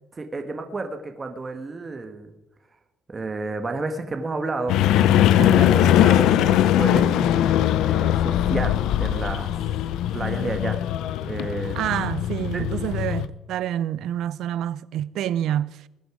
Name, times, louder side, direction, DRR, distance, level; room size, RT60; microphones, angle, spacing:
voice 1, 0.2-2.3 3.1-4.8 5.4-7.5 7.8-9.5 10.1-10.8 11.2-11.8 12.5-12.6, right 3 dB, 25° right, 1.5 m, -31 dB
sound 1, 4.7-13.3, left 11 dB, 85° left, 0.7 m, -20 dB
voice 2, 11.8-15.9, right 11 dB, 75° right, 0.6 m, -27 dB
21.0 x 9.2 x 5.0 m
cardioid pair, 120°, 0 cm